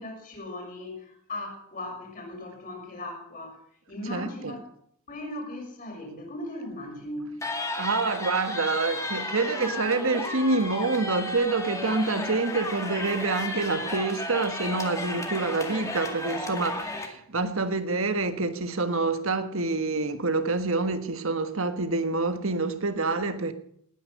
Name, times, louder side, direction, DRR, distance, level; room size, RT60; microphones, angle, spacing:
voice 1, 0.0-3.6 3.9-4.7 5.1-7.4, left 1 dB, 35° left, 6.6 m, -38 dB
voice 2, 4.1-4.5 7.8-23.5, right 3 dB, 65° right, 1.4 m, -27 dB
sound 1, 7.4-17.1, left 2 dB, 15° left, 2.1 m, -33 dB
19.0 x 10.0 x 6.6 m
head